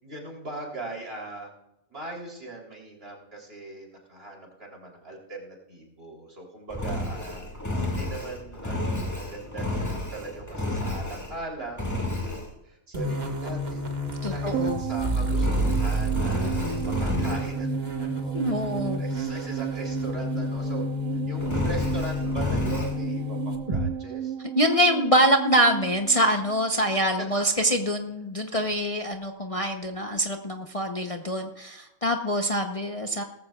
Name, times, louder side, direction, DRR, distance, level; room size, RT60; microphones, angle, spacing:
voice 1, 0.0-1.5 1.9-7.4 7.9-11.8 12.2-13.9 14.2-20.9 21.3-24.3 26.9-27.3, right 2 dB, 50° right, -1 dB, 3.8 m, -40 dB
Engine, 6.7-11.4 11.8-12.5 15.3-17.6 21.4-23.0, left 1 dB, 15° left, 2.1 m, -31 dB
sound 1, 12.9-23.8, left 1 dB, 35° right, 1.8 m, -30 dB
voice 2, 14.2-14.8 16.3-16.9 18.3-19.0 24.6-33.2, equal, 30° left, 3 dB, 0.9 m, -25 dB
sound 2, 14.5-27.1 27.3-27.4, right 10 dB, 85° right, 1.0 m, -34 dB
18.5 x 14.5 x 2.4 m, 0.87 s
omnidirectional pair, 1.3 m